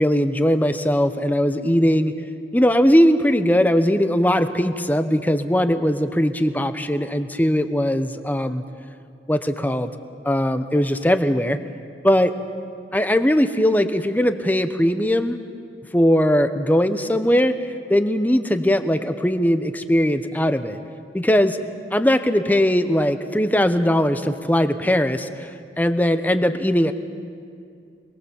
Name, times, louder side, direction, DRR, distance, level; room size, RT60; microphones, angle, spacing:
voice 1, 0.0-2.1 2.5-8.6 9.3-9.9 10.2-11.6 12.0-12.3 12.9-15.4 15.9-17.6 17.9-20.8 21.1-21.6 21.9-25.5 25.8-26.9, equal, 10° left, 9 dB, 0.8 m, -19 dB
27.0 x 20.5 x 7.2 m, 2.4 s
head